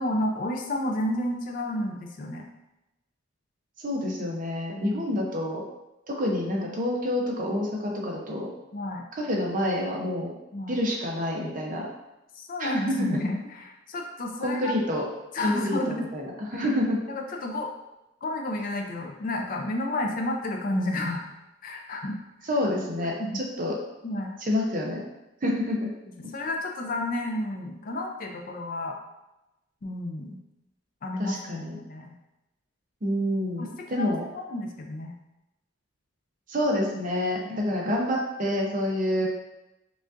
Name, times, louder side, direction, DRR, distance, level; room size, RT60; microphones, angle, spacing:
voice 1, 0.0-2.4 4.7-5.0 8.7-9.0 10.5-10.8 12.4-14.8 15.3-16.1 17.1-17.7 18.2-21.2 21.6-22.2 23.2-23.4 24.0-24.4 26.3-29.0 29.8-30.4 31.0-32.1 33.6-35.1, left 1 dB, 40° left, 2 dB, 0.4 m, -31 dB
voice 2, 3.8-5.6 6.1-8.5 9.1-10.3 10.7-11.9 12.6-13.2 14.4-15.0 15.4-17.0 22.4-23.8 24.4-25.0 25.4-25.9 31.2-31.8 33.0-34.2 36.5-39.3, left 1 dB, 40° right, -1 dB, 0.6 m, -28 dB
5.0 x 2.4 x 2.5 m, 0.94 s
head